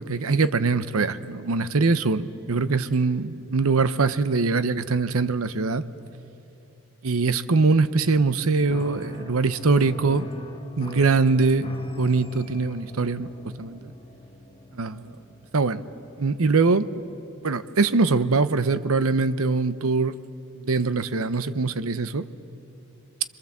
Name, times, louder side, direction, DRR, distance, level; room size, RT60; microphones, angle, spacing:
voice 1, 0.0-5.8 7.0-10.3 10.8-11.7 11.9-13.3 13.6-13.9 14.7-15.1 15.5-15.8 16.2-16.9 17.4-20.1 20.6-22.3, right 4 dB, 75° right, 13 dB, 0.8 m, -22 dB
Piano, 8.7-17.1, left 1 dB, 25° left, 1.5 m, -39 dB
26.5 x 23.0 x 7.3 m, 3.0 s
head